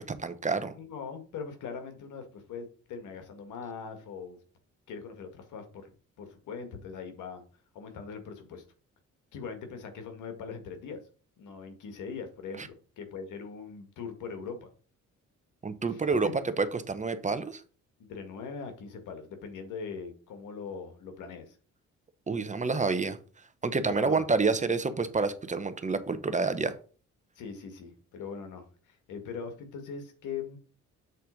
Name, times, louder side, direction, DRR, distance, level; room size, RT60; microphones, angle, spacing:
voice 1, 0.1-0.7 12.6-12.7 15.6-16.3 16.6-17.6 22.3-23.2 23.6-26.7, right 4 dB, 25° right, 1.0 m, -28 dB
voice 2, 0.7-4.4 4.9-7.4 7.7-8.6 9.3-11.0 11.4-14.7 15.9-16.3 18.1-21.6 23.9-24.3 27.4-30.6, left 5 dB, 85° left, 1.9 m, -41 dB
7.9 x 4.2 x 5.1 m
cardioid pair, 90°, 30 cm